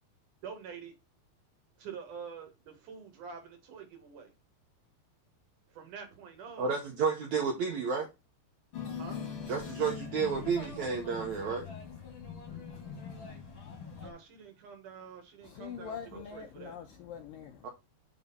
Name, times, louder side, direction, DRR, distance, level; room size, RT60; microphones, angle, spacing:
voice 1, 0.4-1.0 1.8-4.3 5.7-6.7 8.9-9.2 14.0-16.0 16.3-16.8, right 6 dB, 60° right, 2.5 m, -46 dB
voice 2, 6.6-8.1 9.5-11.7 17.6-17.7, right 5 dB, 80° right, 1.6 m, -31 dB
sound 1, 8.7-14.1, left 6 dB, 45° left, 1.6 m, -42 dB
voice 3, 15.4-17.7, left 7 dB, 80° left, 2.0 m, -44 dB
7.7 x 3.9 x 5.5 m
omnidirectional pair, 4.9 m